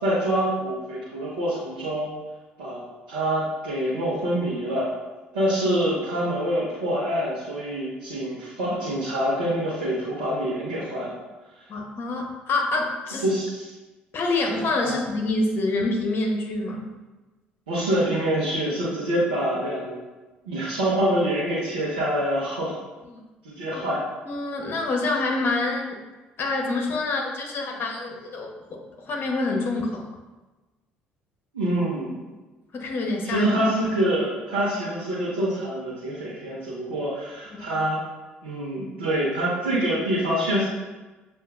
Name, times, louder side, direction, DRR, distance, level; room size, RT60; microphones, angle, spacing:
voice 1, 0.0-2.1 2.6-2.8 3.1-4.9 5.3-11.1 13.2-13.7 14.8-14.9 17.7-20.0 20.5-22.7 23.4-24.0 31.5-32.2 33.2-38.0 38.4-40.6, right 1 dB, 80° right, -10 dB, 1.1 m, -25 dB
voice 2, 11.7-13.3 14.1-16.9 23.1-23.2 23.7-23.8 24.3-25.8 26.4-30.1 32.7-33.5 37.5-37.8, left 2 dB, 50° left, 1 dB, 0.9 m, -26 dB
7.0 x 2.8 x 2.4 m, 1.2 s
hypercardioid pair, 55°, 5 cm